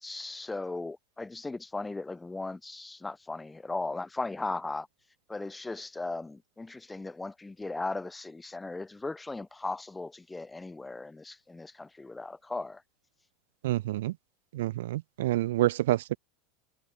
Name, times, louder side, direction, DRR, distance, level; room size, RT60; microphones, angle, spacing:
voice 1, 0.0-4.9 5.3-12.8, left 3 dB, 10° left, 2.6 m, -37 dB
voice 2, 13.6-14.1 14.5-16.2, right 15 dB, 85° right, 0.4 m, -28 dB
supercardioid pair, 145°, 0 cm